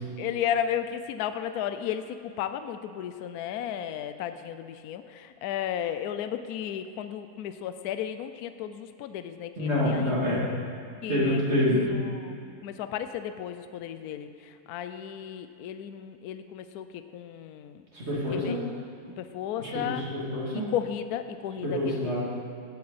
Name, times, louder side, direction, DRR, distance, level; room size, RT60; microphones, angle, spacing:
voice 1, 0.2-10.1 11.0-12.4 12.6-17.8 18.3-18.6 19.2-20.1 20.5-22.2, left 9 dB, 70° left, 10 dB, 1.0 m, -34 dB
voice 2, 9.6-10.4 11.1-11.8 17.9-18.6 19.6-20.6 21.6-22.2, left 1 dB, 40° right, -5 dB, 2.7 m, -27 dB
16.5 x 8.5 x 4.1 m, 2.5 s
omnidirectional pair, 1.8 m